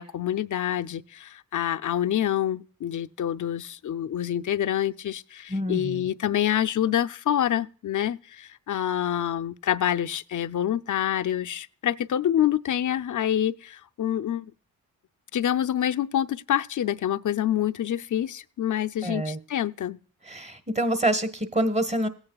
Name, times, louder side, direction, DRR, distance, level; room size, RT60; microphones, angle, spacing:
voice 1, 0.0-14.5 15.3-20.0, left 10 dB, 55° left, 0.6 m, -27 dB
voice 2, 5.5-6.0 19.0-19.4 20.3-22.1, right 1 dB, 20° right, 1.3 m, -26 dB
17.5 x 8.8 x 2.3 m
cardioid pair, 50°, 36 cm